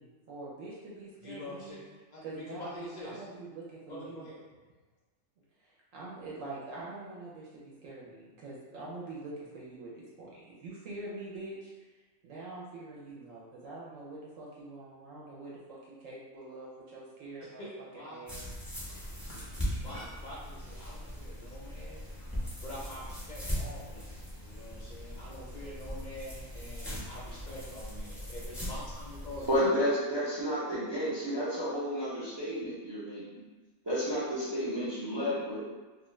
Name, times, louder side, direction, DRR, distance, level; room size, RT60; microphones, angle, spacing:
voice 1, 0.0-1.8 2.2-4.2 5.6-11.7 12.2-17.6 18.1-19.1, right 2 dB, 70° right, -6 dB, 0.9 m, -45 dB
voice 2, 1.2-1.8 2.1-3.2 3.9-4.4 17.6-17.7 17.9-18.5 19.7-22.1 22.6-29.7, left 1 dB, 55° left, -7 dB, 0.5 m, -45 dB
sound 1, 18.3-29.6, equal, ahead, 0.6 m, -40 dB
voice 3, 29.5-33.4 33.8-35.7, equal, 45° right, -10 dB, 0.3 m, -31 dB
2.4 x 2.4 x 3.0 m, 1.3 s
omnidirectional pair, 1.5 m